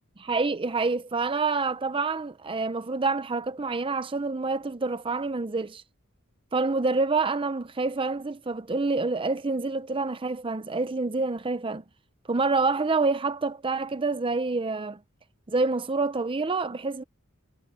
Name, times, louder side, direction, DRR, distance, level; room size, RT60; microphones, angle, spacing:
voice 1, 0.2-5.8 6.5-11.8 12.3-15.0 15.5-17.0, right 3 dB, 25° right, 0.6 m, -27 dB
head